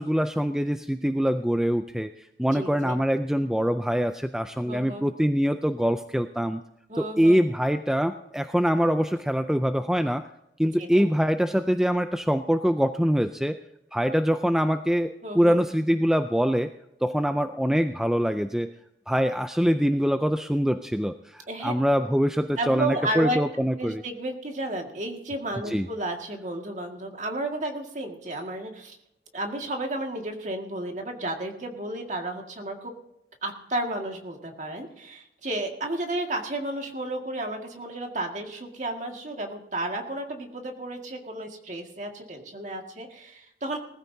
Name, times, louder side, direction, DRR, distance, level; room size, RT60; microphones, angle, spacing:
voice 1, 0.0-6.6 7.0-10.3 10.6-13.6 13.9-16.7 17.0-18.7 19.1-24.0 25.7-25.9, equal, 5° right, 8 dB, 0.4 m, -24 dB
voice 2, 2.5-3.0 4.7-5.0 6.9-7.4 10.8-11.1 15.2-15.6 21.5-21.7 22.6-23.4 23.8-29.0 29.3-32.9 33.4-43.8, right 1 dB, 40° right, 2 dB, 2.0 m, -32 dB
20.0 x 14.5 x 2.8 m, 0.83 s
head